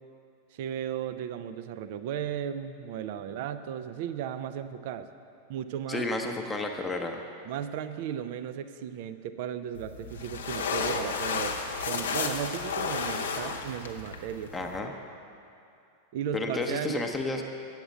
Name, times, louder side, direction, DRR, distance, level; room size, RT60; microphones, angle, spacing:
voice 1, 0.5-5.1 5.5-6.1 7.4-11.6 11.8-14.5 16.1-17.1, right 9 dB, 50° right, 11 dB, 0.4 m, -35 dB
voice 2, 5.9-7.2 14.5-15.0 16.3-17.4, left 2 dB, 10° left, 2 dB, 0.7 m, -31 dB
sound 1, 9.7-14.8, left 5 dB, 65° left, 0.7 m, -32 dB
8.8 x 7.3 x 6.4 m, 2.6 s
figure-of-eight pair, 90°, 0 cm